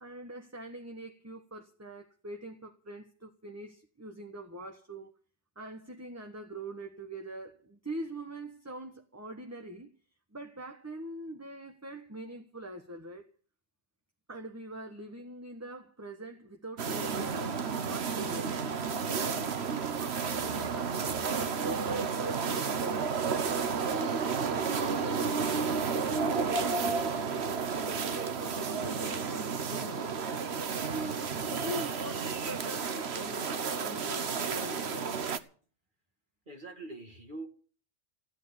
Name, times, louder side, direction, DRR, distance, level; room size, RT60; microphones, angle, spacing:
voice 1, 0.0-5.2 5.6-9.9 10.3-13.3 14.3-18.5 19.1-23.0 23.4-25.4 25.9-30.2 30.8-35.2, right 1 dB, 15° right, 1.1 m, -43 dB
sound 1, 16.8-35.4, right 5 dB, 65° right, 1.3 m, -32 dB
voice 2, 36.5-37.5, right 2 dB, 45° right, 2.0 m, -43 dB
16.0 x 9.2 x 8.3 m
omnidirectional pair, 1.2 m